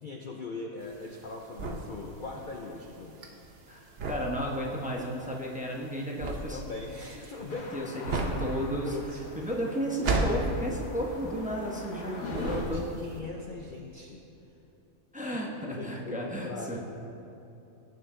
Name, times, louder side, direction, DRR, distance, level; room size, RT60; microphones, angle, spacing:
voice 1, 0.0-3.3 6.3-7.7 8.8-9.5 11.5-14.2 15.3-15.4 15.7-16.8, left 3 dB, 50° left, 0 dB, 0.7 m, -41 dB
sound 1, 0.8-12.0 12.3-13.1, right 2 dB, 50° right, 1.0 m, -34 dB
voice 2, 3.7-6.6 7.7-8.9 9.4-12.9 15.1-16.8, equal, 5° right, -1 dB, 0.8 m, -33 dB
sound 2, 7.5-12.7, left 3 dB, 75° left, 1.6 m, -42 dB
17.5 x 6.9 x 3.7 m, 2.9 s
omnidirectional pair, 1.5 m